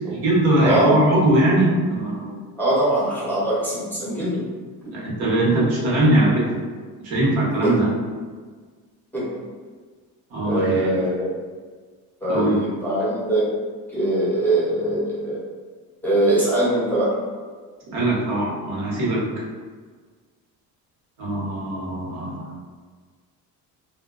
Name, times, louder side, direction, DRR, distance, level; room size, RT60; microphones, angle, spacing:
voice 1, 0.1-2.4 4.9-6.6 7.0-7.9 10.3-11.1 12.3-12.6 17.9-19.3 21.2-22.4, right 1 dB, 85° right, -5 dB, 0.9 m, -21 dB
voice 2, 0.6-1.0 2.6-4.4 4.8-4.9 7.6-7.7 9.1-9.4 10.4-11.3 12.2-13.5 13.9-15.4 16.0-17.2, right 1 dB, 5° left, -8 dB, 0.5 m, -22 dB
2.7 x 2.1 x 2.3 m, 1.5 s
cardioid pair, 150°, 36 cm